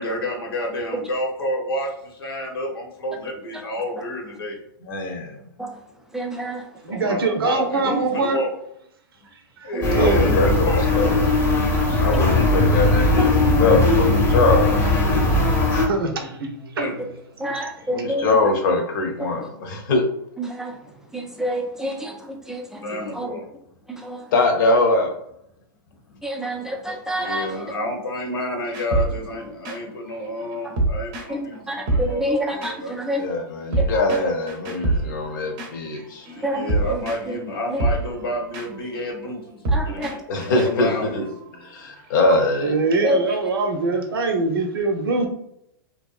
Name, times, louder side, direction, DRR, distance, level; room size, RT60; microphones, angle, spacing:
voice 1, 0.0-4.6 6.9-8.5 9.6-10.9 16.8-17.1 22.8-23.5 26.1-26.2 27.1-32.2 32.5-32.9 36.4-40.2 40.5-41.2, left 1 dB, 90° left, 1 dB, 1.0 m, -29 dB
voice 2, 4.8-5.4 9.9-11.3 12.0-15.3 17.9-20.0 24.3-25.1 33.2-36.3 40.3-41.2 41.6-42.8, left 2 dB, 60° left, 3 dB, 0.7 m, -22 dB
voice 3, 6.1-6.7 7.0-7.1 9.7-10.1 12.1-12.3 17.4-18.5 19.4-19.5 20.4-20.8 21.1-22.8 23.1-23.3 23.9-24.3 26.2-27.6 31.3-33.2 33.8-33.9 36.4-37.0 37.3-37.4 37.7-37.8 39.7-40.2 43.0-43.2, equal, 5° right, 1 dB, 0.3 m, -28 dB
voice 4, 6.8-8.4 9.6-10.4 11.4-11.5 11.9-12.1 13.1-13.6 14.7-14.8 15.3-16.9 42.6-45.3, right 3 dB, 85° right, 5 dB, 0.6 m, -24 dB
sound 1, 9.8-15.9, left 2 dB, 20° left, 0.7 m, -19 dB
sound 2, 28.7-31.6 31.9-43.5, right 2 dB, 40° right, 0.6 m, -28 dB
2.7 x 2.2 x 2.4 m, 0.76 s
hypercardioid pair, 130°, 12 cm